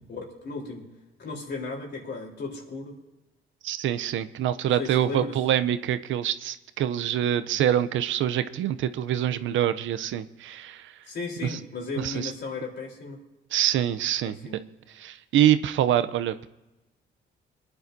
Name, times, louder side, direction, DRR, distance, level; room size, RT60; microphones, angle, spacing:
voice 1, 0.1-0.9 1.2-3.0 4.6-5.4 11.1-13.2 14.2-14.6, left 3 dB, 60° left, 0 dB, 3.8 m, -35 dB
voice 2, 3.6-10.9 11.4-11.6 12.0-12.3 13.5-14.4 15.0-16.5, right 11 dB, 75° right, 12 dB, 0.7 m, -25 dB
23.5 x 10.5 x 2.7 m, 1.0 s
cardioid pair, 90°, 20 cm